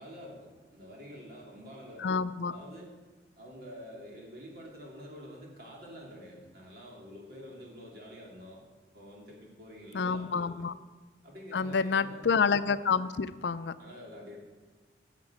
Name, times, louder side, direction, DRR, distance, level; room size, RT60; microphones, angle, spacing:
voice 1, 0.0-2.1 2.4-2.9 3.4-8.6 8.9-10.7 11.2-12.3 13.8-14.4, equal, 55° right, -2 dB, 2.8 m, -47 dB
voice 2, 2.0-2.6 9.9-10.7 11.5-13.7, left 5 dB, 70° left, 13 dB, 0.5 m, -28 dB
11.0 x 7.5 x 7.2 m, 1.3 s
head